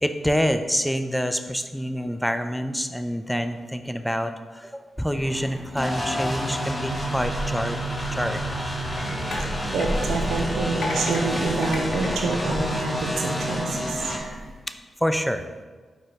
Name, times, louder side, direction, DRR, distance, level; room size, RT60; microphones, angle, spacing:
voice 1, 0.0-7.8 8.1-8.4 15.0-15.5, equal, ahead, 8 dB, 0.4 m, -26 dB
sound 1, 5.1-14.5, equal, 35° right, 1.5 m, -37 dB
sound 2, 5.8-14.2, equal, 25° left, 0.9 m, -29 dB
sound 3, 8.5-13.4 13.9-14.2, left 2 dB, 70° left, 0.6 m, -35 dB
voice 2, 9.7-14.1, right 3 dB, 80° right, 3 dB, 0.5 m, -27 dB
4.7 x 2.3 x 4.6 m, 1.4 s
supercardioid pair, 40°, 0 cm